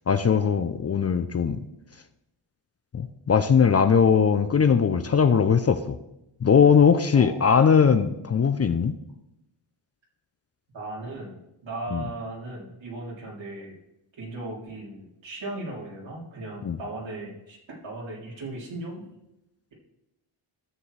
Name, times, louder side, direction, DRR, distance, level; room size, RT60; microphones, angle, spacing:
voice 1, 0.1-1.6 2.9-5.9 6.4-9.0 11.9-12.0 16.6-16.8, left 6 dB, 30° left, 10 dB, 0.5 m, -20 dB
voice 2, 10.7-13.7 14.2-17.6 17.8-19.1, right 2 dB, 65° right, -3 dB, 3.5 m, -37 dB
12.5 x 7.0 x 3.3 m, 0.87 s
cardioid pair, 70°, 49 cm